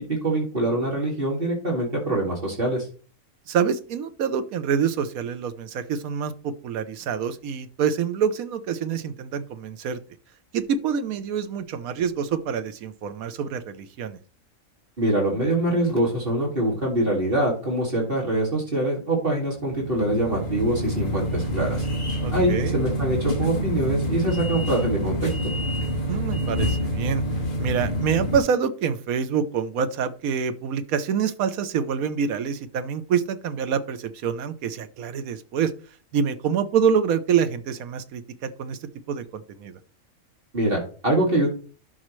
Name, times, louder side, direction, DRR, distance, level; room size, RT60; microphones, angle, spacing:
voice 1, 0.2-2.9 15.0-21.9 22.3-25.3 40.5-41.5, right 1 dB, 40° right, -3 dB, 2.5 m, -24 dB
voice 2, 3.5-10.0 10.5-14.2 22.2-22.7 26.1-27.2 27.6-35.7 36.1-39.7, right 7 dB, 85° right, 12 dB, 1.2 m, -26 dB
sound 1, 19.6-28.4, equal, 40° left, 1.7 m, -27 dB
11.5 x 6.3 x 3.1 m, 0.39 s
omnidirectional pair, 1.4 m